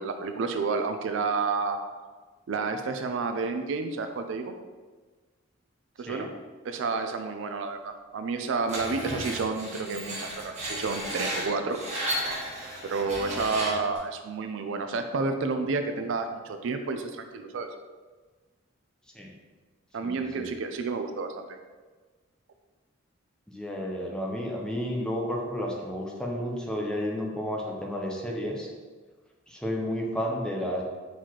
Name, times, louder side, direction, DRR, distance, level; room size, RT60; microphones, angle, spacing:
voice 1, 0.0-1.8 2.5-4.5 6.0-6.3 6.6-11.8 12.8-17.7 19.9-21.6, right 4 dB, 70° right, 7 dB, 0.4 m, -30 dB
Screech, 8.7-14.0, right 1 dB, 35° right, 1.2 m, -34 dB
voice 2, 20.0-20.5 23.5-28.7 29.5-30.8, equal, 5° left, -1 dB, 0.6 m, -32 dB
4.6 x 4.0 x 2.9 m, 1.4 s
head